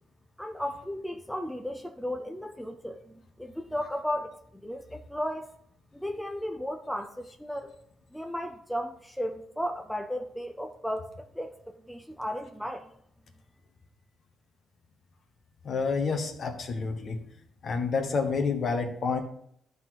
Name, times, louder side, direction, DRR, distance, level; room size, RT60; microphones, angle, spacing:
voice 1, 0.4-5.5 5.9-7.7 8.1-11.1 11.3-12.9, equal, ahead, 0.6 m, -35 dB
voice 2, 15.6-17.2 17.6-19.2, left 4 dB, 50° left, 1.5 m, -29 dB
11.5 x 4.1 x 4.7 m
cardioid pair, 90°, 0 cm